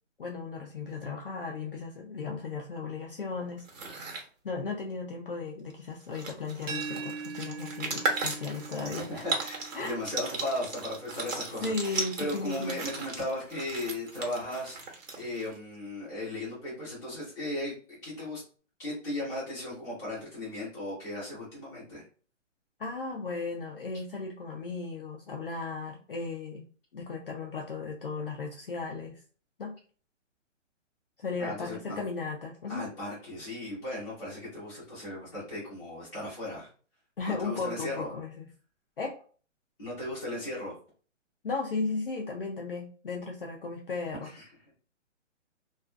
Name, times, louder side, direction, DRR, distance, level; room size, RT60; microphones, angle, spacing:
voice 1, 0.2-4.1 4.4-9.2 9.7-10.0 11.6-12.8 22.8-26.7 26.9-29.2 29.6-29.8 31.2-32.9 37.2-38.5 39.0-39.2 41.4-44.3, left 4 dB, 50° left, 0 dB, 0.4 m, -36 dB
sound 1, 3.6-4.3 5.7-5.8 6.0-15.6, right 3 dB, 85° right, 1.0 m, -36 dB
sound 2, 6.7-12.4, right 5 dB, 45° right, 0.7 m, -43 dB
voice 2, 9.2-18.4 18.8-22.0 31.4-32.0 32.7-36.7 37.4-38.1 39.8-40.8 44.3-44.4, left 1 dB, 5° left, -10 dB, 0.8 m, -36 dB
2.4 x 2.4 x 2.3 m, 0.40 s
hypercardioid pair, 165°, 38 cm